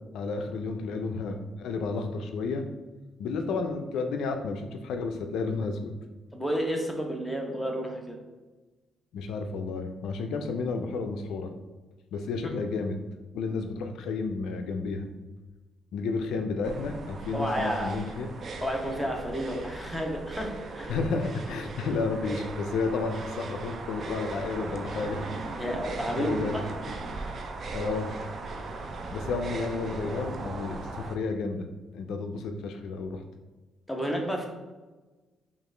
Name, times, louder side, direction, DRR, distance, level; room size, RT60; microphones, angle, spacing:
voice 1, 0.1-2.7 3.2-5.9 9.1-11.5 12.1-12.9 13.3-15.1 15.9-18.3 20.9-25.2 25.6-25.7 26.2-26.6 27.1-27.3 27.7-28.1 29.1-31.7 31.9-33.2, left 4 dB, 80° left, 6 dB, 0.3 m, -31 dB
voice 2, 6.3-8.2 17.3-17.9 18.6-20.9 25.6-26.6 33.9-34.5, equal, ahead, 0 dB, 0.7 m, -31 dB
sound 1, 16.6-31.1, right 3 dB, 50° right, 0.4 m, -38 dB
4.7 x 2.4 x 3.2 m, 1.2 s
cardioid pair, 90°, 0 cm